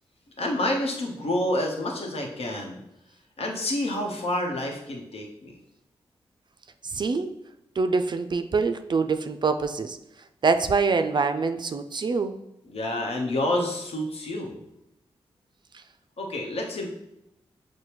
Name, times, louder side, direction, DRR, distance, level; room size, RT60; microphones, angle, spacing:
voice 1, 0.4-2.8 3.4-5.5 12.7-14.5 16.2-16.9, left 1 dB, 70° left, 1 dB, 0.9 m, -28 dB
voice 2, 6.8-7.3 7.8-10.0 10.4-12.4 15.7-15.8, right 4 dB, 45° right, 9 dB, 0.4 m, -25 dB
6.4 x 2.2 x 3.0 m, 0.84 s
cardioid pair, 45°, 11 cm